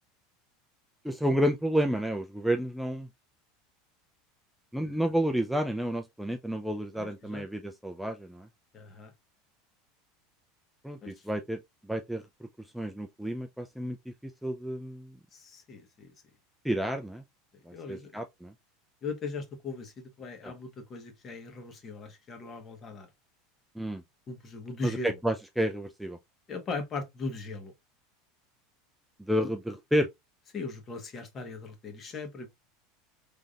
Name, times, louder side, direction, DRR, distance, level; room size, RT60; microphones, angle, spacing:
voice 1, 1.0-3.1 4.7-8.5 10.8-15.2 16.6-17.2 17.7-18.5 20.4-20.5 23.8-24.0 24.8-26.2 29.2-30.1, equal, ahead, 0.4 m, -31 dB
voice 2, 6.9-7.4 8.7-9.1 11.0-11.2 15.3-16.1 17.7-18.2 19.0-23.1 24.3-25.2 26.5-27.7 30.5-32.5, left 3 dB, 35° left, 1.3 m, -39 dB
3.8 x 3.4 x 2.4 m
hypercardioid pair, 95°, 0 cm